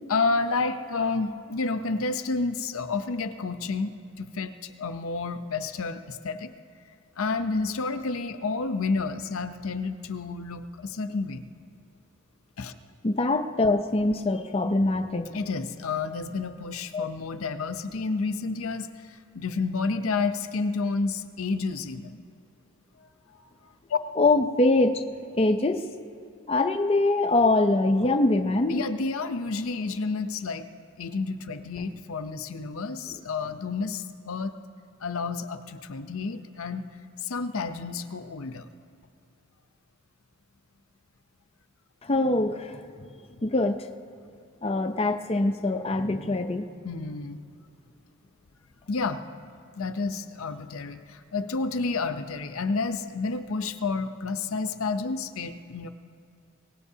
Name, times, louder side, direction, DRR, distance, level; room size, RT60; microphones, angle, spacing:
voice 1, 0.1-6.5 7.2-11.4 12.6-12.7 15.3-22.2 23.9-24.0 28.7-30.7 31.0-34.5 35.0-36.8 37.2-38.7 46.8-47.4 48.9-49.2 49.8-55.9, left 4 dB, 70° left, 9 dB, 0.6 m, -30 dB
voice 2, 13.0-15.4 16.9-17.1 24.2-25.0 25.3-25.9 26.5-28.8 42.0-43.1 43.4-43.9 44.6-46.6, left 2 dB, 25° left, 6 dB, 0.5 m, -23 dB
23.5 x 18.5 x 2.8 m, 2.4 s
head